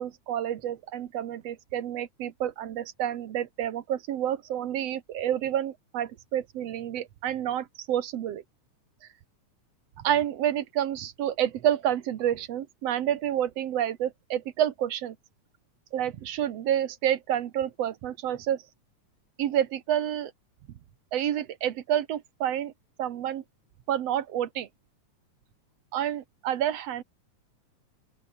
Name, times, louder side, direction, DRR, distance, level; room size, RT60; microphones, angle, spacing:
voice 1, 0.0-8.4 10.0-15.2 15.9-18.6 19.4-20.3 21.1-22.7 23.0-23.4 23.9-24.7 25.9-27.0, right 10 dB, 60° right, 2.0 m, -29 dB
open air
omnidirectional pair, 3.6 m